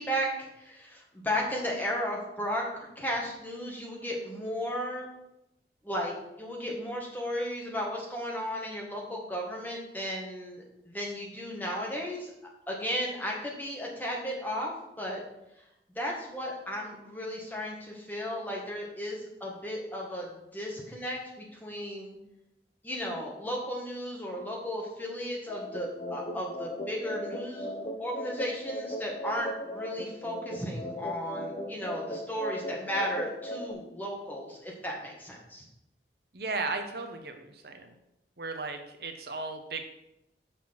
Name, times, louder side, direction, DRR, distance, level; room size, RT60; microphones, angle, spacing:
voice 1, 0.0-5.1 5.8-12.3 12.7-14.7 15.0-15.2 15.9-20.3 20.5-22.2 22.8-27.7 28.0-35.6, equal, 10° left, -2 dB, 1.7 m, -35 dB
sound 1, 25.5-33.7, equal, 35° left, 0.9 m, -37 dB
voice 2, 36.3-37.9 38.4-39.8, right 3 dB, 60° right, 6 dB, 0.9 m, -35 dB
6.7 x 5.9 x 5.9 m, 0.86 s
head